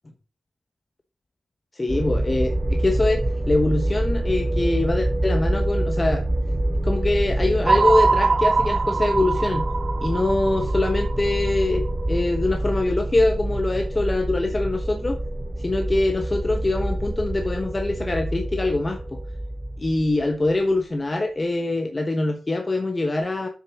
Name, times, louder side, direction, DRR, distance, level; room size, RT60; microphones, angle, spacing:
voice 1, 1.7-6.2 6.8-9.7 10.0-15.2 15.6-19.2 19.8-23.5, left 2 dB, 25° left, 5 dB, 1.1 m, -23 dB
sound 1, 1.9-20.8, right 1 dB, 15° right, 1.3 m, -26 dB
sound 2, 7.7-11.9, right 4 dB, 45° right, 0.6 m, -23 dB
7.4 x 6.7 x 6.2 m, 0.39 s
cardioid pair, 80°, 0 cm